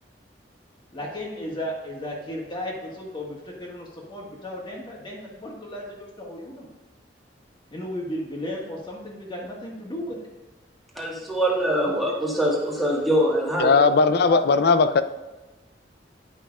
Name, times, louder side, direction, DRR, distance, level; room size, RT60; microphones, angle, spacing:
voice 1, 0.9-6.7 7.7-10.2 11.8-11.9, left 1 dB, 30° left, 1.7 m, -35 dB
voice 2, 10.9-13.7 14.3-14.4, equal, ahead, 1.6 m, -23 dB
voice 3, 13.6-15.0, left 4 dB, 60° left, 0.4 m, -18 dB
11.0 x 5.6 x 2.4 m
head